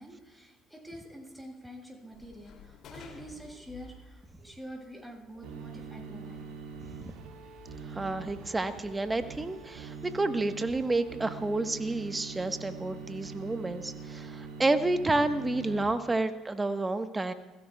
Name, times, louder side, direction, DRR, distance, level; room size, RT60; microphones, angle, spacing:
voice 1, 0.0-6.5, equal, ahead, -1 dB, 7.4 m, -46 dB
sound 1, 2.1-9.7, left 3 dB, 55° left, 2.9 m, -54 dB
sound 2, 5.4-15.8, right 5 dB, 65° right, 2.3 m, -43 dB
voice 2, 6.8-7.1 7.8-17.3, right 2 dB, 20° right, 8 dB, 1.4 m, -30 dB
29.5 x 16.5 x 2.4 m, 1.1 s
hypercardioid pair, 55°, 0 cm